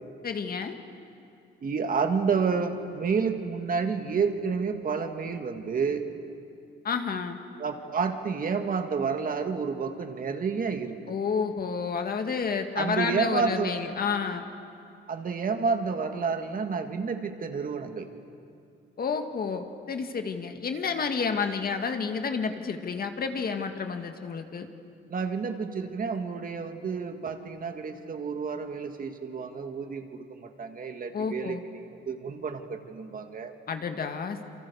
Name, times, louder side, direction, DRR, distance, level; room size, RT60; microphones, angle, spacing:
voice 1, 0.2-0.8 6.8-7.4 11.1-14.5 19.0-24.7 31.1-31.6 33.7-34.4, left 5 dB, 50° left, 6 dB, 2.0 m, -30 dB
voice 2, 1.6-6.1 7.6-11.1 12.8-13.8 15.1-18.1 25.1-33.5, right 5 dB, 45° right, 6 dB, 2.0 m, -30 dB
28.0 x 24.0 x 7.0 m, 2.5 s
cardioid pair, 90°, 20 cm